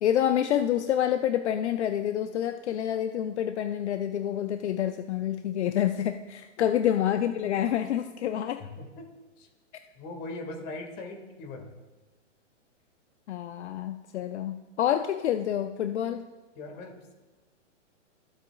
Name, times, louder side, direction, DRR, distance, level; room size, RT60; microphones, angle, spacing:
voice 1, 0.0-8.6 13.3-16.3, left 10 dB, 65° left, 8 dB, 0.6 m, -28 dB
voice 2, 8.6-9.1 9.4-9.5 10.0-11.7 16.6-17.1, left 2 dB, 25° left, 3 dB, 1.8 m, -40 dB
23.0 x 8.1 x 2.3 m, 1.2 s
hypercardioid pair, 150°, 37 cm